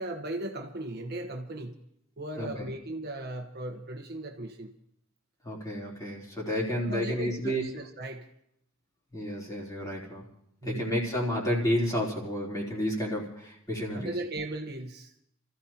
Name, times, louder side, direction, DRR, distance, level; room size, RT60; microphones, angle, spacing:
voice 1, 0.0-1.8 2.2-4.7 6.9-8.3 10.6-10.9 13.9-15.2, right 1 dB, 50° right, 4 dB, 1.2 m, -37 dB
voice 2, 5.4-7.6 9.1-10.2 10.6-14.1, equal, 15° left, -4 dB, 3.6 m, -31 dB
29.5 x 14.5 x 2.9 m, 0.73 s
head